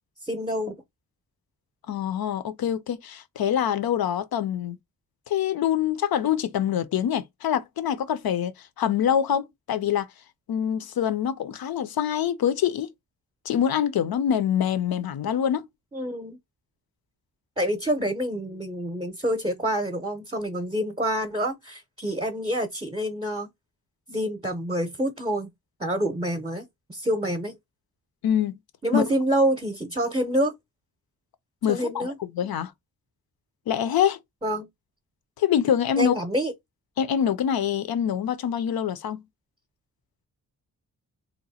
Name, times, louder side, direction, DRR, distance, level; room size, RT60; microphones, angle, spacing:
voice 1, 0.2-0.8 15.9-16.4 17.6-23.5 24.1-25.5 25.8-27.6 28.8-30.5 31.7-32.2 34.4-34.7 35.9-36.5, right 1 dB, 15° right, 0.7 m, -27 dB
voice 2, 1.9-4.8 5.3-10.1 10.5-12.9 13.5-15.7 28.2-28.5 28.9-29.0 31.6-32.1 32.4-32.7 33.7-34.2 35.4-36.1 37.0-39.2, left 9 dB, 75° left, 0.6 m, -25 dB
2.9 x 2.1 x 4.1 m
cardioid pair, 65°, 37 cm